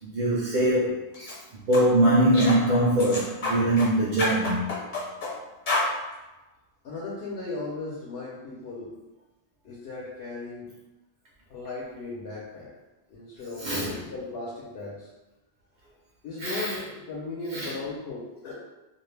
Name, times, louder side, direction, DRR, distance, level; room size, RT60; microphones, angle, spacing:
voice 1, 0.0-4.6 13.6-14.0 16.4-16.7 17.5-17.7, right 1 dB, 60° right, -5 dB, 0.7 m, -23 dB
sound 1, 1.1-1.3 1.7-1.9 2.3-2.6 3.0-3.9 4.2-5.3 5.7-5.9, left 2 dB, 50° left, 0.9 m, -28 dB
voice 2, 6.8-8.9 9.6-10.7 11.5-12.7 13.1-15.1 16.2-18.5, left 3 dB, 75° left, -6 dB, 0.8 m, -37 dB
2.4 x 2.0 x 3.1 m, 1.1 s
omnidirectional pair, 1.0 m